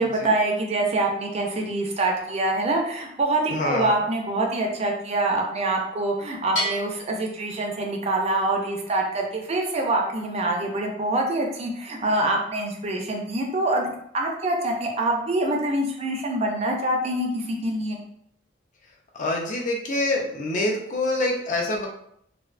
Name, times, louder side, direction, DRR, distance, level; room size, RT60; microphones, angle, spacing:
voice 1, 0.0-18.0, right 2 dB, 35° right, 1 dB, 0.4 m, -25 dB
voice 2, 3.5-3.9 19.1-21.9, left 2 dB, 40° left, 0 dB, 0.4 m, -26 dB
Bell, 6.6-8.3, equal, 80° left, 0.8 m, -32 dB
2.5 x 2.0 x 2.4 m, 0.71 s
head